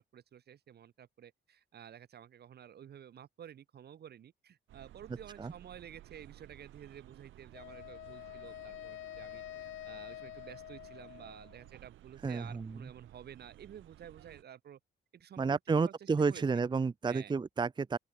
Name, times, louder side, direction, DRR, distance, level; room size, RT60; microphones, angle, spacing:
voice 1, 0.0-14.8 15.1-16.4 17.1-17.3, right 9 dB, 55° right, 1.1 m, -52 dB
sound 1, 4.7-14.4, right 14 dB, 80° right, 1.2 m, -57 dB
Wind instrument woodwind instrument, 7.5-11.7, left 15 dB, 80° left, 0.9 m, -47 dB
voice 2, 12.2-12.7 15.4-18.0, right 4 dB, 20° right, 0.6 m, -31 dB
open air
cardioid pair, 90°, 20 cm